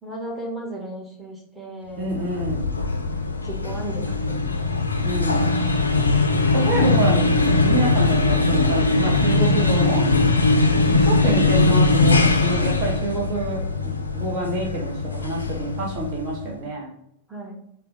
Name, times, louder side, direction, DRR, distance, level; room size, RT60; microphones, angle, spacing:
voice 1, 0.0-2.5 3.4-4.2 4.5-4.7 6.3-6.6 10.7-10.9 16.5-16.6 17.3-17.6, right 1 dB, 5° right, -4 dB, 1.1 m, -36 dB
sound 1, 2.0-16.5, left 3 dB, 80° left, 0.3 m, -20 dB
voice 2, 2.0-2.7 5.0-5.6 6.5-10.0 10.9-13.6 14.1-16.9, right 2 dB, 40° right, -2 dB, 0.8 m, -27 dB
4.1 x 2.1 x 3.9 m, 0.75 s
figure-of-eight pair, 90°, 0 cm